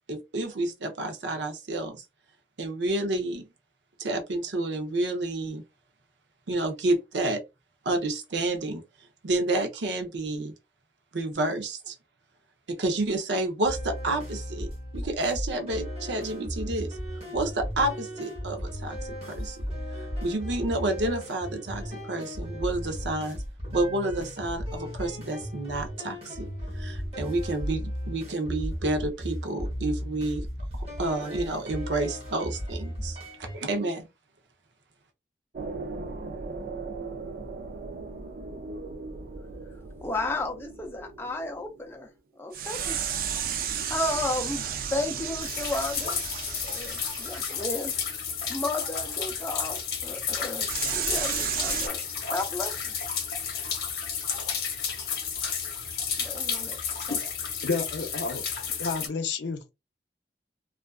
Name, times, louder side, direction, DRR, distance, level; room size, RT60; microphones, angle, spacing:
voice 1, 0.1-2.0 2.6-3.5 4.0-5.6 6.5-7.4 7.9-8.8 9.2-10.5 11.1-11.9 12.7-14.7 14.9-17.0 17.3-19.6 20.2-23.4 23.7-26.5 26.7-30.5 30.7-34.1, right 2 dB, 90° right, 0.6 m, -29 dB
sound 1, 13.6-33.6, equal, 35° right, 1.0 m, -35 dB
sound 2, 35.5-42.0 42.5-48.0 50.6-51.9, right 7 dB, 55° right, 0.3 m, -34 dB
voice 2, 40.0-42.1 42.4-43.0 43.9-44.6 44.9-46.2 46.6-47.9 48.5-52.0 52.3-52.9 56.2-56.8 57.1-57.2, left 2 dB, 15° left, 0.4 m, -33 dB
sound 3, 45.4-59.1, left 7 dB, 60° left, 0.8 m, -32 dB
voice 3, 57.6-58.4 58.8-59.6, left 4 dB, 85° left, 0.5 m, -30 dB
2.4 x 2.3 x 2.3 m
head